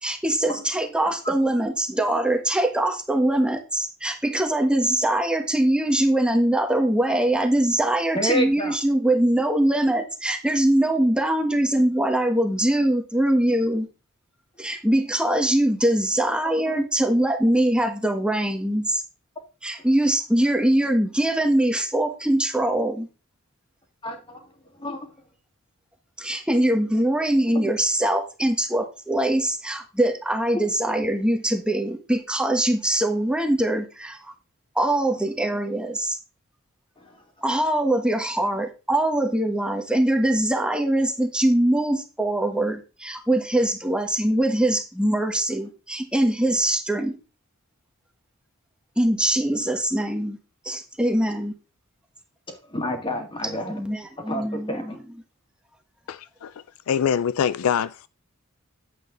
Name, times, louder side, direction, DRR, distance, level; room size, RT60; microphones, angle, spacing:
voice 1, 0.0-13.9 14.6-19.0 19.6-23.1 26.2-34.3 34.7-36.2 37.4-47.1 49.0-50.4 50.6-51.5 53.7-54.8, right 1 dB, 5° right, 1.3 m, -22 dB
voice 2, 8.1-8.8 16.4-16.9 19.8-19.9 24.0-25.1 27.5-27.7 30.5-30.9 37.0-37.2 52.5-53.8 54.3-55.0, equal, 25° left, 2.1 m, -30 dB
voice 3, 56.1-56.5 56.9-58.1, left 8 dB, 70° left, 0.4 m, -24 dB
9.4 x 8.1 x 3.8 m
head